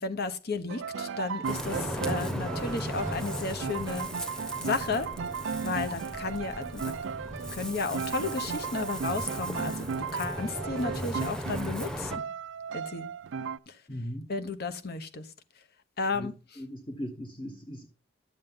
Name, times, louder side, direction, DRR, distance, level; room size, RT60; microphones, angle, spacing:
voice 1, 0.0-4.1 4.6-5.1 5.6-6.9 7.5-12.2 12.7-13.1 14.3-15.3 16.0-16.3, left 3 dB, 55° left, 1.0 m, -33 dB
sound 1, 0.7-13.6, right 6 dB, 70° right, 0.4 m, -36 dB
Ocean, 1.4-12.2, equal, 5° left, 1.0 m, -37 dB
voice 2, 13.9-14.3 16.1-17.9, equal, 30° left, 1.0 m, -39 dB
11.0 x 7.4 x 3.7 m
head